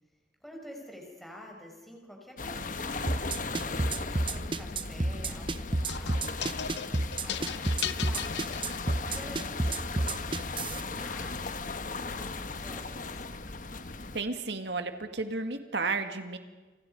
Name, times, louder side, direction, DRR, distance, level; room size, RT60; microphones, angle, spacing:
voice 1, 0.4-3.7 4.1-8.5 9.0-13.2, left 1 dB, ahead, 0 dB, 4.8 m, -49 dB
sound 1, 2.4-14.2, left 3 dB, 45° left, 1.3 m, -37 dB
sound 2, 3.1-10.8, right 2 dB, 30° right, 0.9 m, -29 dB
sound 3, 5.9-9.3, left 9 dB, 75° left, 0.8 m, -37 dB
voice 2, 14.1-16.4, right 3 dB, 75° right, 7 dB, 2.1 m, -32 dB
29.5 x 26.0 x 5.4 m, 1.3 s
head